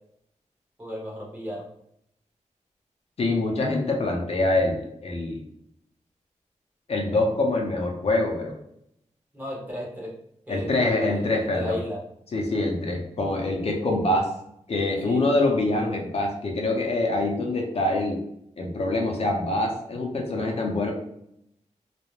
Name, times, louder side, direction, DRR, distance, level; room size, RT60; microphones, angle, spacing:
voice 1, 0.8-1.6 9.3-10.1 10.5-12.0 15.0-15.3, equal, 15° right, -4 dB, 0.8 m, -34 dB
voice 2, 3.2-5.4 6.9-8.5 10.5-11.8 12.3-14.3 14.7-18.2 18.6-20.9, left 2 dB, 50° left, 0 dB, 0.5 m, -25 dB
2.4 x 2.1 x 3.0 m, 0.74 s
wide cardioid pair, 145°, 13 cm